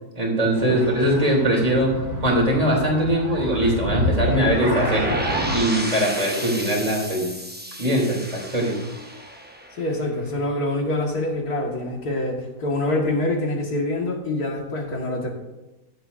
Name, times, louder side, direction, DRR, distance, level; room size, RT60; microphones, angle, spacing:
voice 1, 0.1-1.9 2.2-5.1 5.5-7.3 7.8-8.8, right 1 dB, 25° right, -1 dB, 3.1 m, -21 dB
sound 1, 0.6-5.6, equal, 90° right, 2.5 m, -28 dB
sound 2, 4.6-10.5, right 1 dB, 10° right, 0.8 m, -32 dB
voice 2, 9.8-15.3, left 2 dB, 90° left, 0 dB, 2.3 m, -25 dB
14.5 x 11.0 x 2.6 m, 1.0 s
omnidirectional pair, 1.6 m